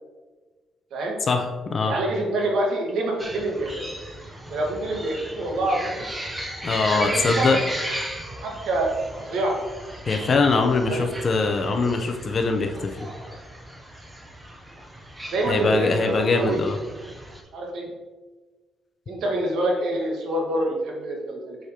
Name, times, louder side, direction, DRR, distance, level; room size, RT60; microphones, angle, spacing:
voice 1, 1.3-1.9 6.6-7.6 10.1-12.9 15.5-16.8, left 4 dB, 35° left, 5 dB, 0.6 m, -22 dB
voice 2, 1.8-3.7 4.5-6.2 6.9-7.5 8.4-8.9 9.2-9.6 10.6-11.1 15.3-16.6 17.5-17.9 19.1-21.6, right 1 dB, 70° right, 0 dB, 1.4 m, -26 dB
sound 1, 3.2-17.4, right 1 dB, 10° right, 0.6 m, -35 dB
7.9 x 5.0 x 2.8 m, 1.3 s
cardioid pair, 160°, 0 cm